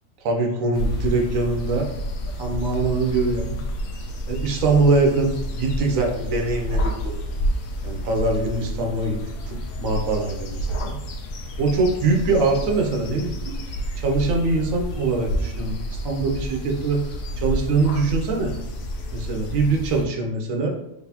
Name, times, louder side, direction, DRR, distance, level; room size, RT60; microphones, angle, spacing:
voice 1, 0.2-1.9 2.4-3.6 4.3-7.2 7.8-9.2 9.5-10.9 11.6-13.6 14.0-17.0 17.4-18.5 19.1-20.7, right 3 dB, 80° right, 2 dB, 1.2 m, -23 dB
sound 1, 0.7-20.1, equal, 85° left, 1.1 m, -29 dB
4.0 x 3.2 x 2.8 m, 0.83 s
omnidirectional pair, 1.4 m